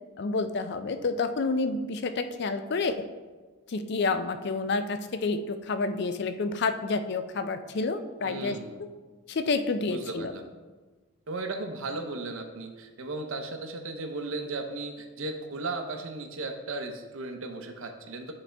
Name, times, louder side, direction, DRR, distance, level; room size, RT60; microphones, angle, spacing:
voice 1, 0.2-3.1 3.7-8.9 9.3-10.3, left 3 dB, 50° left, 10 dB, 0.4 m, -29 dB
voice 2, 8.2-8.8 9.9-10.5 11.3-18.3, right 2 dB, 70° right, 5 dB, 0.7 m, -36 dB
8.7 x 4.2 x 3.4 m, 1.3 s
head